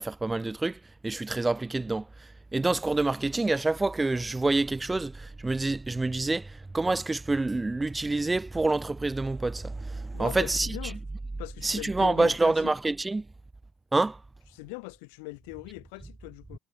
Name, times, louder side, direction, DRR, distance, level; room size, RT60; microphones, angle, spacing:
voice 1, 0.0-2.1 2.5-10.7 11.6-13.2 13.9-14.2, right 2 dB, 20° right, 1.5 m, -27 dB
voice 2, 10.1-11.0 11.4-12.7 14.5-16.6, left 32 dB, 70° left, 2.9 m, -40 dB
figure-of-eight pair, 50°, 0 cm